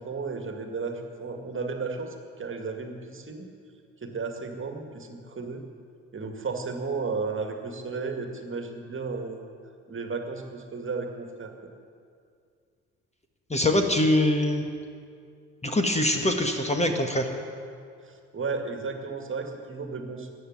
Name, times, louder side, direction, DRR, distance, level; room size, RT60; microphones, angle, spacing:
voice 1, 0.0-3.5 4.0-5.6 6.1-9.4 9.9-11.5 18.0-20.3, right 4 dB, 30° right, 4 dB, 2.1 m, -34 dB
voice 2, 13.5-14.7 15.6-17.3, left 1 dB, 15° left, 4 dB, 1.6 m, -23 dB
14.5 x 9.2 x 9.6 m, 2.3 s
hypercardioid pair, 50°, 38 cm